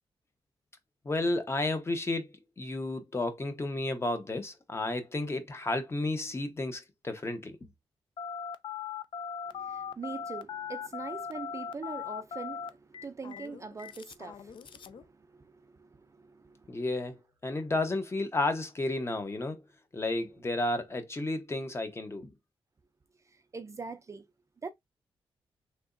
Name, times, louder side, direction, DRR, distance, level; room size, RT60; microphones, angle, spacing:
voice 1, 1.0-7.6 16.7-19.6 19.9-22.3, left 2 dB, 25° left, 0.8 m, -32 dB
Telephone, 8.2-15.0, left 7 dB, 55° left, 0.4 m, -39 dB
voice 2, 9.5-16.8 23.3-24.3 24.6-24.7, right 4 dB, 30° right, 0.4 m, -43 dB
3.4 x 2.8 x 2.5 m
cardioid pair, 95°, 10 cm